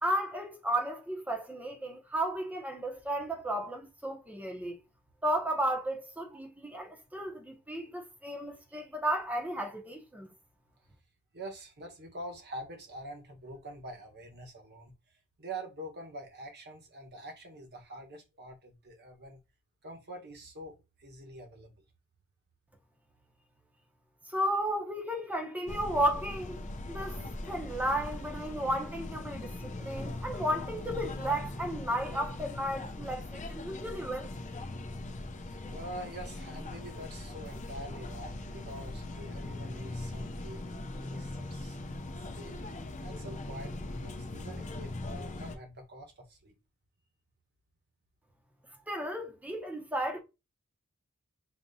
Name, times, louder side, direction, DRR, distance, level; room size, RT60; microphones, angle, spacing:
voice 1, 0.0-4.8 5.2-10.3 24.3-26.6 26.9-27.2 27.5-34.3 48.9-50.2, right 1 dB, 5° right, 0.8 m, -33 dB
voice 2, 11.3-14.9 15.4-19.4 19.8-21.7 35.7-41.8 42.2-42.6 43.0-46.5, right 1 dB, 50° right, 1.2 m, -45 dB
sound 1, 25.7-45.6, left 2 dB, 35° left, 0.6 m, -40 dB
4.9 x 2.9 x 2.7 m
head